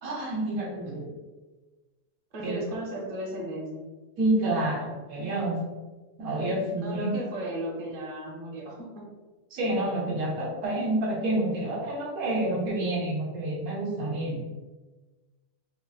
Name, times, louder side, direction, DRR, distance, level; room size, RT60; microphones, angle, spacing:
voice 1, 0.0-1.1 2.4-2.6 4.2-5.7 6.2-7.1 9.5-14.4, right 1 dB, 65° right, -2 dB, 1.2 m, -28 dB
voice 2, 2.3-3.8 6.8-9.0, right 1 dB, 40° right, -3 dB, 0.8 m, -35 dB
3.7 x 2.0 x 3.9 m, 1.2 s
omnidirectional pair, 1.7 m